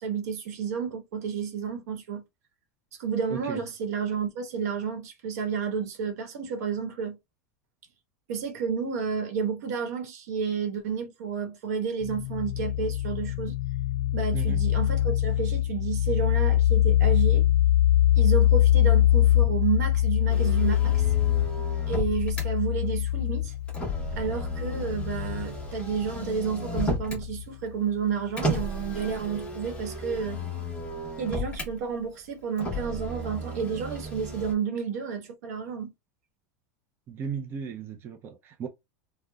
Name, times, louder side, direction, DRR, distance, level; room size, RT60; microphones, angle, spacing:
voice 1, 0.0-2.2 3.0-7.2 8.3-13.6 14.1-17.5 18.1-21.1 21.9-23.5 24.2-30.4 31.2-35.9, right 6 dB, 85° right, 1.1 m, -31 dB
voice 2, 3.3-3.6 14.3-14.7 37.1-38.7, right 6 dB, 25° right, 0.5 m, -35 dB
sound 1, 12.0-27.4, left 13 dB, 85° left, 0.4 m, -24 dB
Motor vehicle (road), 20.3-22.5 23.7-27.3 28.4-31.7 32.6-34.5, equal, 15° left, 1.0 m, -34 dB
3.6 x 2.1 x 2.2 m
supercardioid pair, 150°, 9 cm